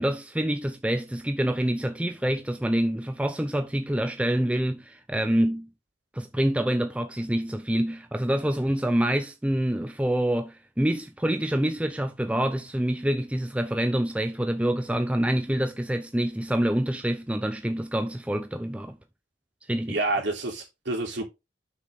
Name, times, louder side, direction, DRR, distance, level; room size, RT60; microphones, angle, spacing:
voice 1, 0.0-5.7 6.1-19.0 19.7-20.0, right 1 dB, 5° right, 0.5 m, -26 dB
voice 2, 19.9-21.2, right 2 dB, 65° right, 3.1 m, -28 dB
7.7 x 6.2 x 3.6 m
head